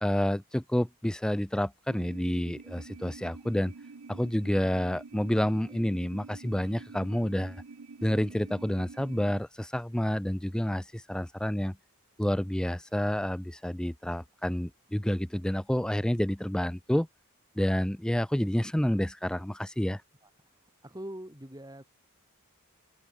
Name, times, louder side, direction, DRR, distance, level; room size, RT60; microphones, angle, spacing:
voice 1, 0.0-3.7 4.1-7.6 8.0-11.8 12.2-17.1 17.6-20.0, equal, 5° left, 0.4 m, -29 dB
sound 1, 1.9-9.4, right 4 dB, 75° right, 0.7 m, -47 dB
voice 2, 20.2-21.8, right 1 dB, 15° right, 3.5 m, -44 dB
open air
head